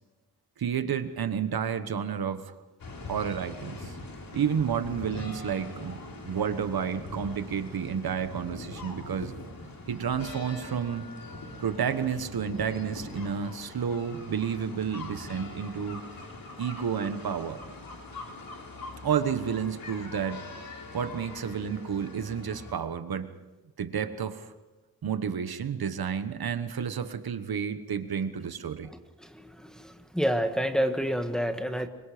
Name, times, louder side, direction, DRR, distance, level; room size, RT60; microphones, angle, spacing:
voice 1, 0.6-2.5 3.1-3.9 4.3-9.3 9.9-11.1 11.6-16.0 16.6-17.6 19.0-20.4 20.9-23.3 23.8-24.5 25.0-28.9, right 7 dB, 80° right, 10 dB, 1.3 m, -31 dB
sound 1, 2.8-22.7, left 2 dB, 65° left, 4.5 m, -42 dB
voice 2, 29.2-31.9, equal, ahead, 6 dB, 1.7 m, -29 dB
26.0 x 24.0 x 5.1 m, 1.2 s
wide cardioid pair, 120°, 36 cm